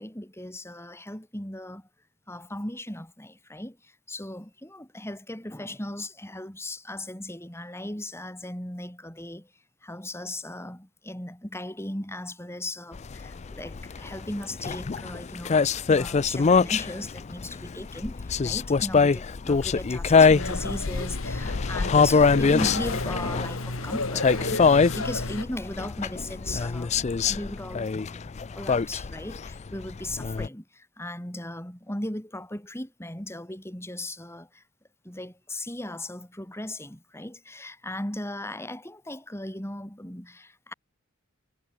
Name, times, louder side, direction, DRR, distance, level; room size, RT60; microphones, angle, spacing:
voice 1, 0.0-1.9 2.3-9.5 9.8-27.0 27.3-34.6 35.0-40.7, left 1 dB, 10° left, 4.2 m, -37 dB
sound 1, 12.9-30.5, left 5 dB, 35° left, 0.4 m, -24 dB
sound 2, 20.3-25.4, left 2 dB, 80° left, 5.4 m, -33 dB
head